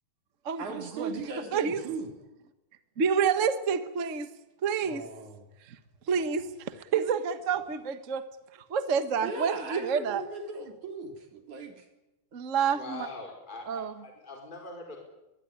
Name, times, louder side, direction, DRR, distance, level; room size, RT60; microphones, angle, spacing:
voice 1, 0.6-2.1 4.8-5.5 9.2-11.9, right 3 dB, 75° right, 4 dB, 4.9 m, -38 dB
voice 2, 3.0-4.3 4.6-5.1 5.7-5.8 6.1-8.2 8.7-10.2 12.3-13.1 13.7-13.9, right 6 dB, 50° right, 10 dB, 0.9 m, -28 dB
voice 3, 12.7-15.0, left 2 dB, 15° left, 1 dB, 4.7 m, -42 dB
22.5 x 21.5 x 9.9 m, 0.96 s
omnidirectional pair, 3.4 m